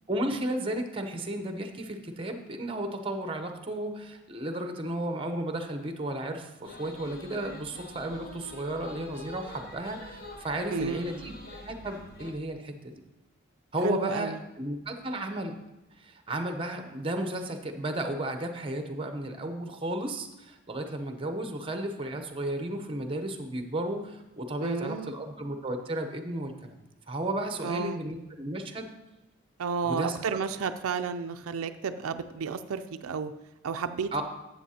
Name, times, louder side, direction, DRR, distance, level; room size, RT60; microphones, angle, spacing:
voice 1, 0.1-11.3 11.7-12.9 13.7-15.6 16.0-26.8 27.1-28.9 29.8-30.2 34.1-34.2, right 1 dB, 25° right, 6 dB, 0.7 m, -33 dB
sound 1, 6.6-12.3, left 1 dB, 50° left, 0.9 m, -46 dB
voice 2, 10.7-11.1 13.8-14.4 24.6-25.1 27.6-28.0 29.6-33.3 33.6-34.1, right 5 dB, 90° right, 9 dB, 0.4 m, -32 dB
12.5 x 7.8 x 2.8 m, 0.98 s
head